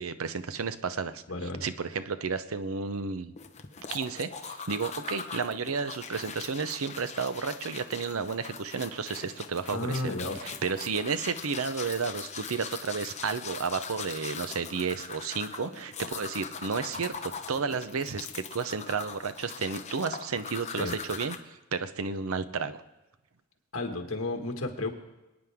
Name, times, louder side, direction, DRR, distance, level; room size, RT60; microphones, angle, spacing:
voice 1, 0.0-3.3 3.9-10.1 10.4-22.8, right 5 dB, 85° right, 12 dB, 0.7 m, -32 dB
voice 2, 1.3-1.6 9.7-10.4 20.8-20.9 23.7-24.9, left 2 dB, 70° left, 3 dB, 1.9 m, -32 dB
sound 1, 3.4-21.4, left 6 dB, 35° left, 0.9 m, -41 dB
27.0 x 9.6 x 3.6 m, 1.0 s
head